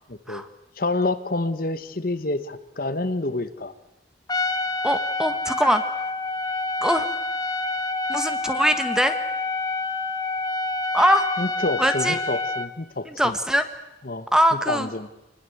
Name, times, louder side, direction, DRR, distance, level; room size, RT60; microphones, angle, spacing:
voice 1, 0.1-0.4 0.8-3.7 11.4-13.3 14.0-14.3 14.7-15.1, left 2 dB, 50° left, 11 dB, 1.2 m, -28 dB
Trumpet, 4.3-12.7, left 3 dB, 20° left, 1.3 m, -27 dB
voice 2, 4.8-5.8 6.8-7.1 8.1-9.1 10.9-11.3 11.8-12.2 13.0-13.7 14.3-14.9, equal, 5° right, 9 dB, 1.5 m, -22 dB
26.5 x 20.0 x 8.0 m, 0.96 s
head